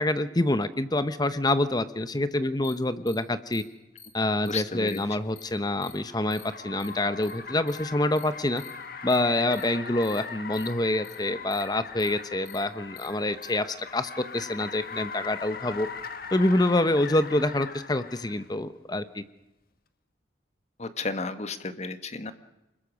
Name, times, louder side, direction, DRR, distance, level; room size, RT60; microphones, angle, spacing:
voice 1, 0.0-3.6 4.1-8.6 9.0-15.9 16.3-19.2, left 1 dB, 20° left, 12 dB, 0.9 m, -26 dB
sound 1, 2.6-2.7 3.1-3.2 3.5-3.6 4.0-4.1 4.4-4.5 4.9-5.0 5.4-5.5 5.8-5.9 6.3-6.4 6.8-6.9 7.2-7.3 7.7-7.8 8.2-8.3 8.6-8.7 9.1-9.2 9.5-9.6 10.0-10.2 10.5-10.7 11.0-11.2 11.5-11.6 12.0-12.1 12.4-12.6 13.0-13.1 13.4-13.5, left 8 dB, 75° left, 4.4 m, -48 dB
Car, 4.5-18.5, left 5 dB, 55° left, 1.7 m, -41 dB
voice 2, 4.5-5.0 20.8-22.3, left 3 dB, 40° left, 10 dB, 1.6 m, -33 dB
26.5 x 21.5 x 6.4 m, 0.97 s
head